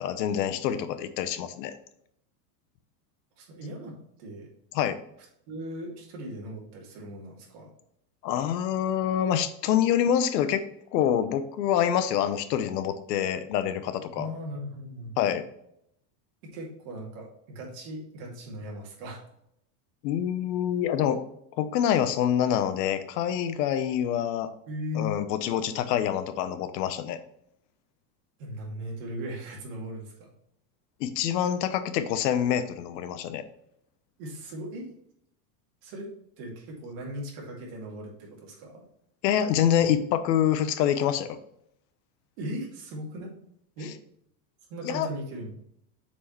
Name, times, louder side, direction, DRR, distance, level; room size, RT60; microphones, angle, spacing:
voice 1, 0.0-1.7 4.7-5.0 8.2-10.6 10.9-14.3 15.2-15.4 20.0-21.3 21.6-24.5 24.9-27.2 31.0-33.4 39.2-41.4 44.8-45.1, left 9 dB, 85° left, 11 dB, 0.9 m, -26 dB
voice 2, 3.4-4.5 5.5-7.7 14.1-15.3 16.5-19.2 24.7-25.2 28.4-30.3 34.2-34.9 35.8-36.1 36.4-38.8 42.4-43.3 43.8-43.9 44.7-45.5, equal, 55° right, -1 dB, 2.3 m, -38 dB
7.2 x 4.6 x 3.1 m, 0.73 s
supercardioid pair, 165°, 48 cm